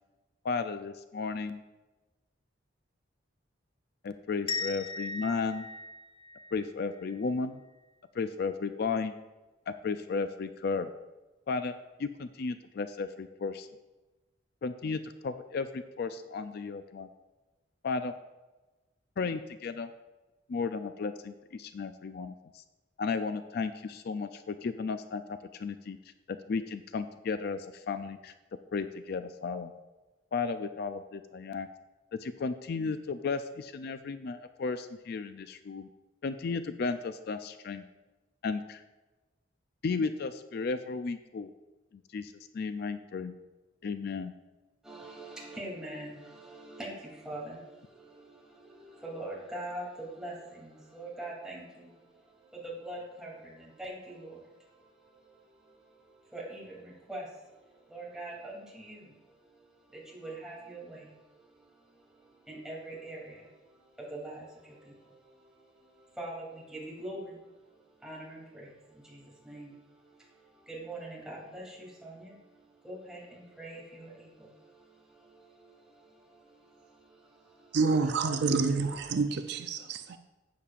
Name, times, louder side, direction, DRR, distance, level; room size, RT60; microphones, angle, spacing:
voice 1, 0.4-1.6 4.0-5.7 6.5-7.6 8.1-9.1 9.7-10.9 11.5-11.7 12.0-13.7 14.6-17.1 17.8-18.1 19.2-19.9 20.5-22.6 23.0-26.0 26.3-28.3 28.7-29.7 30.3-31.7 32.2-35.9 36.2-37.8 38.4-38.8 39.8-41.5 41.9-43.3 43.8-44.3, left 4 dB, 55° left, 0.4 m, -34 dB
sound 1, 4.5-7.3, left 3 dB, 25° left, 0.8 m, -38 dB
voice 2, 44.8-77.8, right 1 dB, 5° right, 2.8 m, -45 dB
voice 3, 77.7-80.2, right 4 dB, 60° right, 0.4 m, -28 dB
12.5 x 8.5 x 2.5 m
head